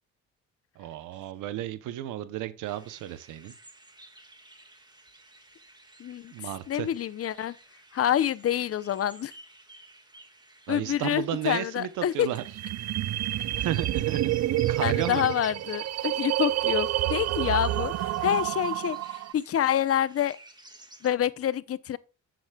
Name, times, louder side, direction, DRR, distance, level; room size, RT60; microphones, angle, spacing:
voice 1, 0.8-3.5 6.3-6.9 10.7-12.4 13.5-14.3 14.7-15.3, right 12 dB, 90° right, 0.8 m, -33 dB
sound 1, 2.6-21.1, right 2 dB, 15° right, 1.8 m, -53 dB
voice 2, 6.0-7.6 7.9-9.3 10.7-12.3 14.8-20.4 21.0-22.0, left 10 dB, 50° left, 0.7 m, -27 dB
sound 2, 12.3-19.3, right 13 dB, 60° right, 0.5 m, -28 dB
11.5 x 7.8 x 2.3 m
cardioid pair, 90°, 30 cm